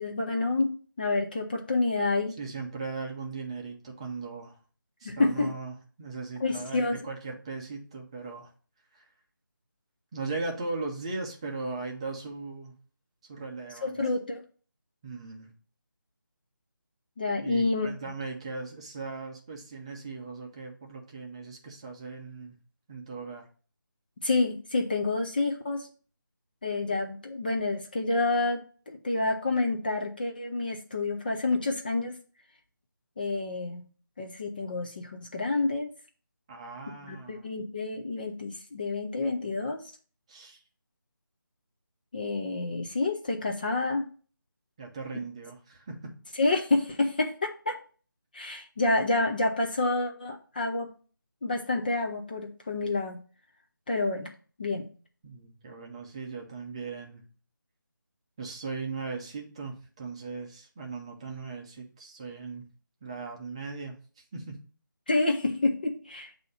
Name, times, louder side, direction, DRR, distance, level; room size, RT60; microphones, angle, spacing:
voice 1, 0.0-2.3 5.0-5.5 6.4-7.0 13.8-14.4 17.2-17.9 24.2-25.9 26.6-32.2 33.2-33.8 34.2-35.9 37.0-39.8 42.1-44.1 46.4-47.8 48.3-50.9 51.4-53.2 53.9-54.3 54.6-54.9 65.1-66.3, left 3 dB, 25° left, 2 dB, 0.5 m, -28 dB
voice 2, 2.4-4.5 5.0-8.5 8.9-9.0 10.1-12.7 13.3-14.0 15.0-15.5 17.4-22.6 22.9-23.4 36.5-37.5 40.3-40.6 44.8-46.1 55.2-57.2 58.4-62.7 63.0-63.9 64.3-64.6, right 4 dB, 15° right, 0 dB, 0.7 m, -38 dB
7.7 x 2.8 x 5.6 m, 0.39 s
figure-of-eight pair, 170°, 11 cm